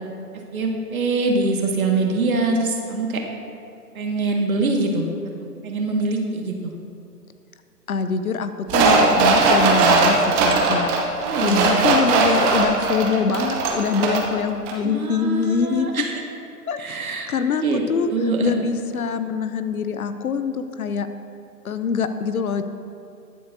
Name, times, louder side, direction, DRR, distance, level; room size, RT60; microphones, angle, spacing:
voice 1, 0.5-3.2 4.0-5.1 5.6-6.7 11.2-11.9 14.8-16.1 16.8-17.8 18.1-18.7, right 3 dB, 60° right, 1 dB, 1.8 m, -24 dB
voice 2, 7.9-15.9 16.7-18.1 18.4-21.1 21.6-22.6, left 6 dB, 60° left, 10 dB, 0.8 m, -24 dB
sound 1, 8.7-14.4 14.7-14.8, right 3 dB, 15° right, 0.9 m, -19 dB
21.0 x 7.5 x 2.7 m, 2.5 s
figure-of-eight pair, 130°, 48 cm